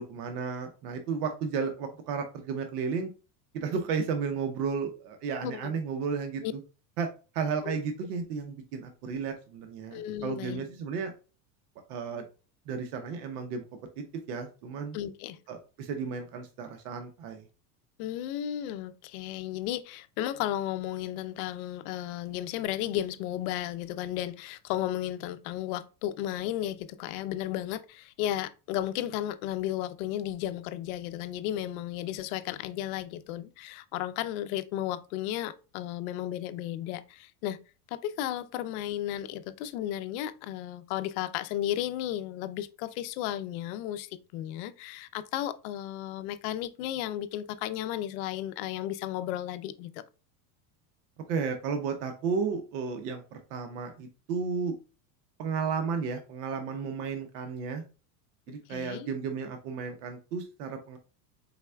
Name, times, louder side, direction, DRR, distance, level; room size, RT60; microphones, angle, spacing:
voice 1, 0.0-3.1 3.5-6.6 7.0-7.1 7.3-11.1 11.9-12.2 12.7-13.6 14.0-15.0 15.5-17.5 51.3-54.7 55.4-57.8 58.5-61.0, right 5 dB, 75° right, 0.9 m, -33 dB
voice 2, 5.4-5.8 6.4-6.5 7.6-7.8 9.9-10.6 14.9-15.4 18.0-37.6 37.9-50.0 58.7-59.1, left 12 dB, 65° left, 0.6 m, -34 dB
4.2 x 4.1 x 2.2 m
supercardioid pair, 130°, 47 cm